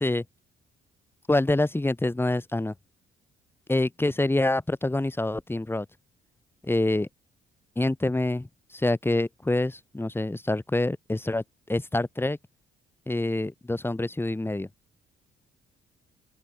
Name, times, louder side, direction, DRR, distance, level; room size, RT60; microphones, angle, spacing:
voice 1, 1.3-2.7 3.7-5.9 6.6-7.1 7.8-12.4 13.1-14.7, left 2 dB, 10° left, 2.4 m, -26 dB
open air
cardioid pair, 90°, 20 cm